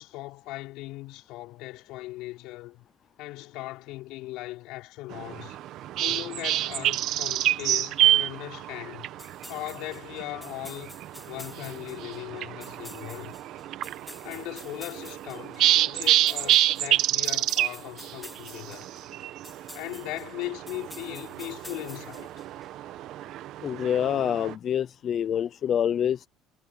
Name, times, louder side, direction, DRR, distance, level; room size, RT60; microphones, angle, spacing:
voice 1, 0.0-2.9 3.2-5.6 6.0-9.1 9.5-11.0 11.2-13.3 14.2-18.9 19.7-22.3, left 18 dB, 70° left, 5.1 m, -38 dB
sound 1, 5.1-24.5, right 13 dB, 55° right, 1.1 m, -28 dB
sound 2, 9.2-22.7, left 1 dB, 5° left, 1.9 m, -49 dB
voice 2, 23.6-26.3, left 9 dB, 40° left, 0.6 m, -26 dB
cardioid pair, 150°, 0 cm